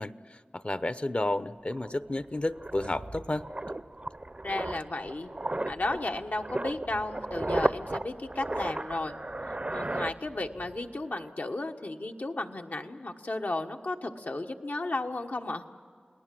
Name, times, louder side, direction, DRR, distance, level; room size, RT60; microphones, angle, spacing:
voice 1, 0.0-3.4, left 1 dB, 45° left, 14 dB, 0.7 m, -32 dB
sound 1, 1.3-1.4 1.7-10.8 11.0-11.3, right 2 dB, 35° right, 0.6 m, -35 dB
voice 2, 4.4-5.3 5.6-9.1 9.7-15.6, left 2 dB, 75° left, 4 dB, 1.3 m, -34 dB
29.5 x 19.0 x 7.6 m, 2.2 s
wide cardioid pair, 45°, 3 cm